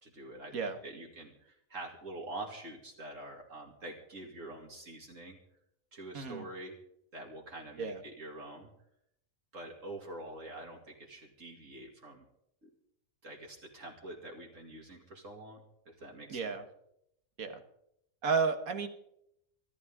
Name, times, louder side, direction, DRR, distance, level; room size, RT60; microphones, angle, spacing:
voice 1, 0.0-5.4 5.9-6.7 7.1-8.7 9.5-12.2 12.6-12.7 13.2-16.5, right 2 dB, 65° right, -1 dB, 2.7 m, -46 dB
voice 2, 6.1-6.5 7.8-8.0 16.3-16.6 17.4-17.6 18.2-18.9, right 5 dB, 90° right, 7 dB, 1.9 m, -32 dB
24.5 x 13.0 x 3.7 m, 0.75 s
omnidirectional pair, 1.4 m